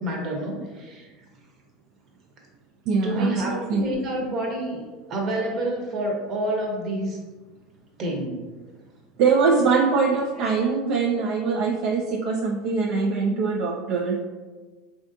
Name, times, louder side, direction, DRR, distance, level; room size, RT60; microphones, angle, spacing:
voice 1, 0.0-1.1 3.0-4.8 5.1-7.2 8.0-8.4, right 1 dB, 45° right, 0 dB, 0.8 m, -28 dB
voice 2, 2.9-3.9 9.2-14.2, right 4 dB, 65° right, 1 dB, 0.3 m, -23 dB
3.3 x 2.5 x 2.6 m, 1.3 s
hypercardioid pair, 95°, 0 cm